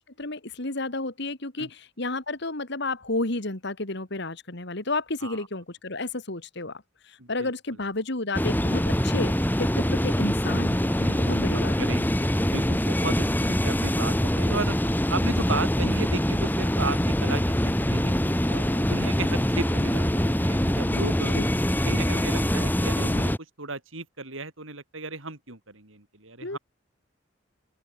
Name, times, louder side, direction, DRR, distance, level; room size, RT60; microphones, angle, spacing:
voice 1, 0.0-9.3 9.6-11.7 21.3-21.4 26.4-26.6, left 2 dB, 60° left, 2.8 m, -31 dB
voice 2, 7.2-7.5 11.0-11.4 11.8-14.8 15.1-21.4 21.8-23.3 23.6-26.6, right 3 dB, 75° right, 5.1 m, -35 dB
sound 1, 8.3-23.4, equal, 10° left, 2.6 m, -24 dB
open air
head